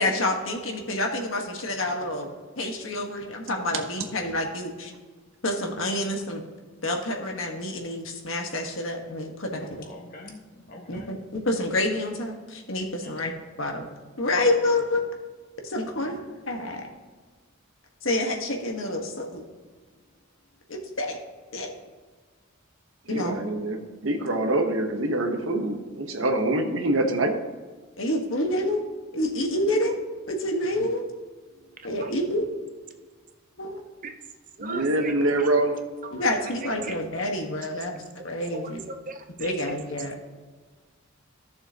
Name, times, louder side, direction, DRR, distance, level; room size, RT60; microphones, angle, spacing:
voice 1, 0.0-2.3 2.6-4.9 5.4-6.4 6.8-9.7 10.9-13.3 13.6-13.9 14.2-15.0 15.6-16.9 18.0-19.4 20.7-21.2 21.5-21.7 23.1-23.4 28.0-28.8 29.1-29.9 30.3-31.0 31.8-32.5 33.6-33.8 36.1-38.8 39.4-40.2, left 1 dB, 75° left, 2 dB, 1.5 m, -28 dB
voice 2, 9.5-11.1 13.0-13.3 15.8-16.2 31.4-31.8, left 1 dB, 45° left, 1 dB, 1.5 m, -46 dB
voice 3, 23.0-27.4 30.8-30.9 34.6-35.9, right 2 dB, 75° right, 4 dB, 1.1 m, -25 dB
voice 4, 34.6-35.1 36.6-36.9 38.5-39.8, right 4 dB, 40° right, 7 dB, 0.6 m, -38 dB
14.5 x 6.8 x 2.9 m, 1.4 s
head